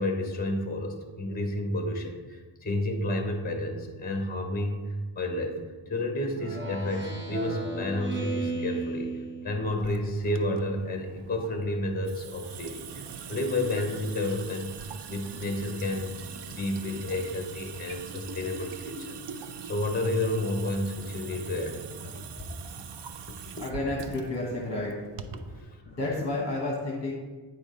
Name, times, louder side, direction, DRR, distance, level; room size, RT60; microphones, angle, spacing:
voice 1, 0.0-5.6 5.9-9.1 9.4-14.8 15.1-16.2 16.5-22.3 25.3-25.8, left 1 dB, 20° left, 3 dB, 0.9 m, -31 dB
Speech synthesizer, 6.3-9.9, right 2 dB, 25° right, 0.8 m, -34 dB
Water tap faucet / Sink (filling or washing) / Drip, 9.6-25.6, right 6 dB, 65° right, 0.5 m, -42 dB
voice 2, 23.6-25.0 25.9-27.1, left 2 dB, 35° left, -3 dB, 1.2 m, -31 dB
9.2 x 5.0 x 3.8 m, 1.4 s
wide cardioid pair, 175°, 45 cm